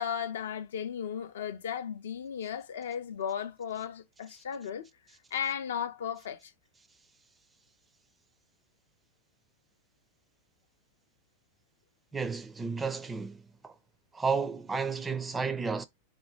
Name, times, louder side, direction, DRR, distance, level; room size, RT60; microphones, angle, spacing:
voice 1, 0.0-4.9 5.3-6.5, left 8 dB, 60° left, 0.4 m, -35 dB
voice 2, 12.1-13.7 14.1-15.8, right 5 dB, 15° right, 0.4 m, -32 dB
3.8 x 2.1 x 4.1 m
figure-of-eight pair, 90°, 0 cm